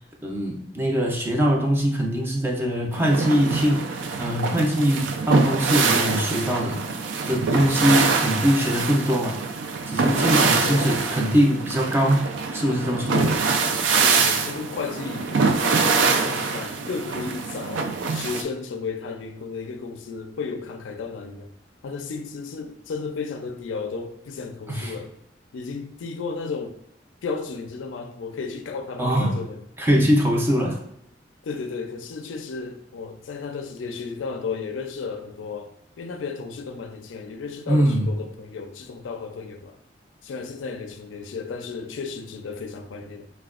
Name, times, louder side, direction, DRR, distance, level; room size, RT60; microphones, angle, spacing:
voice 1, 0.2-6.8 7.3-9.4 9.9-13.3 24.7-24.9 29.0-29.5 29.8-30.8 37.7-38.1, equal, 10° right, 0.4 m, -22 dB
sound 1, 2.9-18.4, right 4 dB, 85° right, 0.4 m, -24 dB
voice 2, 10.2-10.9 13.1-13.5 14.0-21.5 21.8-25.1 25.5-26.8 27.2-29.6 31.4-39.8 40.2-43.3, left 4 dB, 90° left, 0.4 m, -34 dB
4.1 x 2.2 x 2.4 m
head